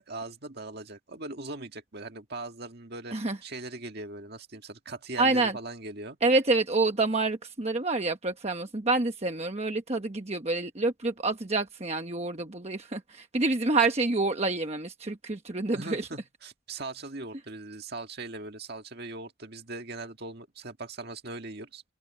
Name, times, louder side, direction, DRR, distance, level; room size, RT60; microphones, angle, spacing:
voice 1, 0.0-3.2 3.4-6.2 15.7-21.8, right 2 dB, 50° right, 1.9 m, -40 dB
voice 2, 5.2-5.6 6.2-16.1, right 3 dB, 30° right, 1.1 m, -27 dB
open air
head